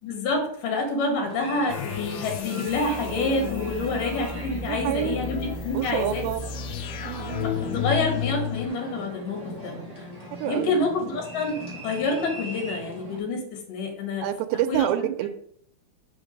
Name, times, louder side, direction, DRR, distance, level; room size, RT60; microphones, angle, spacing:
voice 1, 0.0-6.2 7.4-10.1 10.4-11.6 11.8-14.3 14.7-15.1, left 2 dB, 65° left, 3.1 m, -28 dB
sound 1, 1.2-13.2, equal, 10° right, 2.9 m, -40 dB
sound 2, 1.7-8.7, left 7 dB, 90° left, 2.6 m, -32 dB
voice 2, 4.7-5.2 5.7-6.4 7.0-7.5 10.4-10.8 14.2-15.3, right 12 dB, 80° right, 2.4 m, -27 dB
5.9 x 5.0 x 5.2 m
omnidirectional pair, 4.3 m